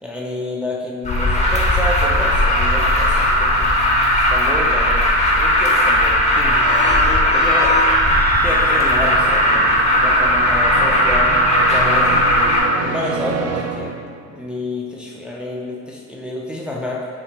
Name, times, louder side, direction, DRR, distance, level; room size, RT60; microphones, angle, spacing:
voice 1, 0.0-3.7 4.3-7.9 8.4-12.3 12.7-14.0 14.3-17.1, left 1 dB, 5° right, -4 dB, 0.8 m, -29 dB
Alarm, 1.0-12.6, left 1 dB, 20° left, 1.5 m, -16 dB
sound 1, 1.9-14.5, right 6 dB, 55° right, 0.6 m, -31 dB
sound 2, 6.4-9.7, left 3 dB, 55° left, 1.6 m, -28 dB
6.6 x 3.8 x 4.6 m, 2.1 s
cardioid pair, 90°, 30 cm